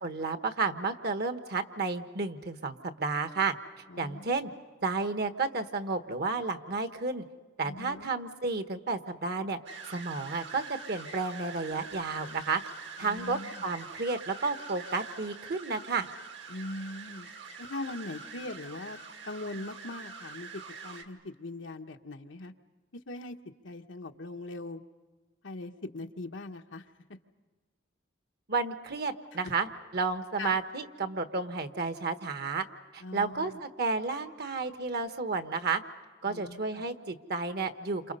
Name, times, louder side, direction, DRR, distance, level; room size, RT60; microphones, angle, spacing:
voice 1, 0.0-3.5 4.0-4.5 4.8-7.2 7.6-9.6 9.8-12.6 13.0-16.1 28.5-32.7 32.9-35.8 36.2-38.0, right 4 dB, 60° right, 9 dB, 1.3 m, -32 dB
voice 2, 3.9-4.4 7.6-8.1 13.0-13.6 16.5-17.3 17.6-19.0 19.3-22.5 23.1-23.4 23.6-24.8 25.4-26.8 30.4-30.6 33.0-33.6 36.2-36.9, left 2 dB, 90° left, 5 dB, 1.2 m, -41 dB
sound 1, 9.7-21.0, right 5 dB, 75° right, 2.2 m, -45 dB
29.0 x 27.5 x 5.5 m, 1.4 s
head